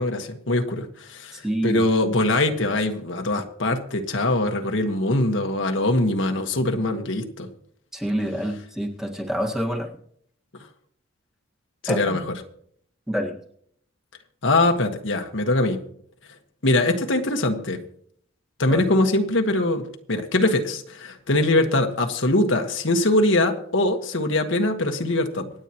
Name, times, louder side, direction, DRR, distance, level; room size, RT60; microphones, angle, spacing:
voice 1, 0.0-7.5 11.8-12.2 14.4-15.8 16.6-17.8 18.6-25.5, left 2 dB, 70° left, 5 dB, 1.4 m, -22 dB
voice 2, 1.3-1.8 7.9-9.9 11.9-12.2 13.1-13.3 18.7-18.8, equal, 5° right, 0 dB, 1.6 m, -27 dB
26.5 x 9.1 x 3.0 m, 0.65 s
head